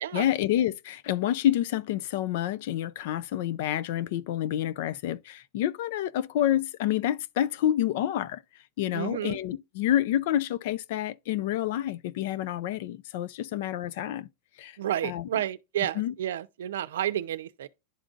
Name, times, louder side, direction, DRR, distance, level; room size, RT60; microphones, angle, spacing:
voice 1, 0.1-8.4 8.8-14.3 14.6-14.8 15.0-15.4 15.9-16.1, left 12 dB, 60° left, 0.4 m, -28 dB
voice 2, 8.9-9.4 14.8-17.7, right 11 dB, 85° right, 0.5 m, -31 dB
11.5 x 3.8 x 2.5 m
supercardioid pair, 145°, 0 cm